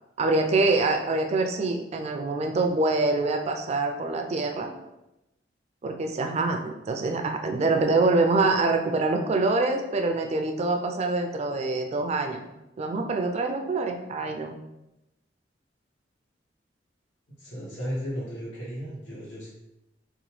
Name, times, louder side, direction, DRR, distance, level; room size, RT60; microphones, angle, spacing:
voice 1, 0.2-4.7 5.8-12.5 12.8-14.6, right 3 dB, 35° right, 4 dB, 0.3 m, -25 dB
voice 2, 17.4-19.5, equal, 90° left, -8 dB, 1.4 m, -34 dB
2.9 x 2.2 x 3.1 m, 0.94 s
head